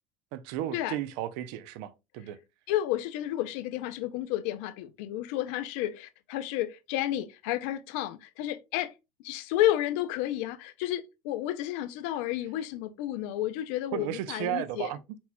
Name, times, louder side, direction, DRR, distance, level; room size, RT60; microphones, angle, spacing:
voice 1, 0.3-2.4 13.9-15.0, right 13 dB, 70° right, 0.5 m, -34 dB
voice 2, 2.7-8.9 9.2-14.9, left 13 dB, 75° left, 0.4 m, -31 dB
4.3 x 4.3 x 2.2 m
cardioid pair, 150°, 7 cm